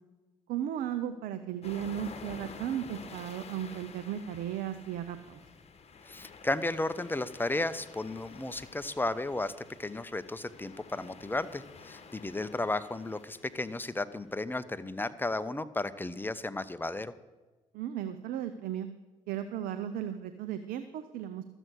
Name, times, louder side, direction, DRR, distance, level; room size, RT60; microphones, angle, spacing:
voice 1, 0.5-5.4 17.7-18.9 19.3-21.4, right 10 dB, 75° right, 10 dB, 0.7 m, -35 dB
sound 1, 1.6-14.2, left 5 dB, 45° left, 1.4 m, -50 dB
voice 2, 6.0-9.5 9.8-17.1, left 2 dB, 15° left, 13 dB, 0.8 m, -34 dB
12.5 x 8.0 x 6.3 m, 1.2 s
hypercardioid pair, 55°, 15 cm